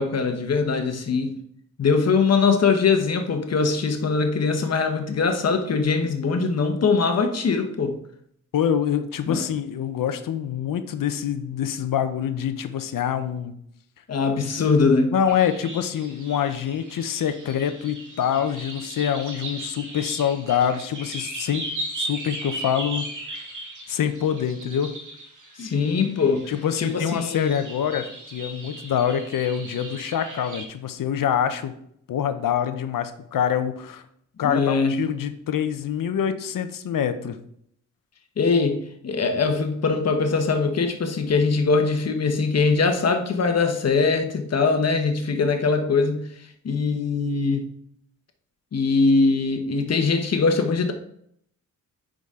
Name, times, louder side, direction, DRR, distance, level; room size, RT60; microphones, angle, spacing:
voice 1, 0.0-1.3 1.8-7.9 9.3-9.4 14.1-15.1 25.6-26.5 26.8-27.5 34.4-34.9 38.4-38.8 39.0-46.2 46.6-47.7 48.7-50.9, left 4 dB, 50° left, 6 dB, 1.1 m, -22 dB
voice 2, 8.5-13.5 14.6-14.7 15.1-21.6 22.0-23.1 23.9-24.9 26.5-31.7 32.1-34.0 34.4-37.4, left 9 dB, 85° left, 10 dB, 0.8 m, -25 dB
sound 1, 15.3-30.6, right 1 dB, 65° right, 1.7 m, -37 dB
9.7 x 5.1 x 3.7 m, 0.71 s
wide cardioid pair, 140°, 32 cm